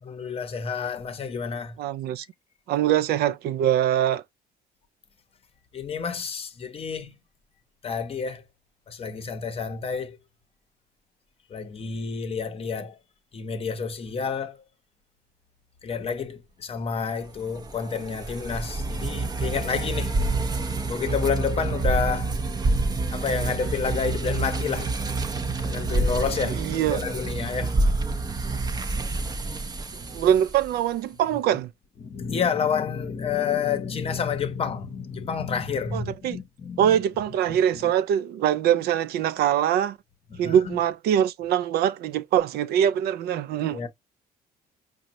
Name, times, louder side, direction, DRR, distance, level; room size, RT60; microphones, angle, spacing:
voice 1, 0.1-1.8 5.7-7.2 7.8-8.4 8.9-10.2 11.5-13.0 13.3-14.6 15.8-20.2 20.8-22.4 22.9-24.9 25.5-26.6 26.9-27.8 28.9-30.3 32.0-37.0 37.5-37.9 40.3-40.8 43.7-43.9, left 6 dB, 35° left, 0.8 m, -30 dB
voice 2, 1.8-2.2 2.7-4.2 26.5-27.0 30.1-31.7 35.9-36.4 36.8-40.0 40.4-43.8, right 10 dB, 70° right, 0.4 m, -23 dB
sound 1, 17.4-30.8, right 3 dB, 25° right, 0.6 m, -28 dB
5.1 x 2.1 x 2.9 m
cardioid pair, 110°, 17 cm